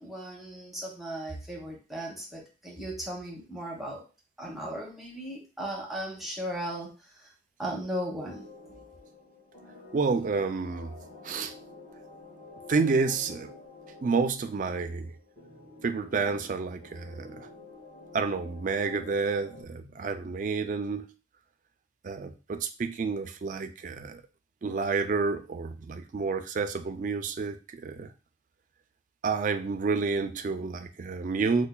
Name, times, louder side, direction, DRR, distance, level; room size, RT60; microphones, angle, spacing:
voice 1, 0.0-4.0 4.4-7.3 7.6-8.5, right 1 dB, ahead, -2 dB, 0.7 m, -37 dB
sound 1, 8.2-19.6, left 3 dB, 45° left, 1.6 m, -49 dB
voice 2, 9.9-11.0 11.2-11.5 12.7-13.5 14.0-15.1 15.8-17.5 18.1-21.1 22.0-24.2 24.6-28.1 29.2-31.7, right 4 dB, 45° right, 8 dB, 0.3 m, -29 dB
5.4 x 2.2 x 2.2 m, 0.33 s
head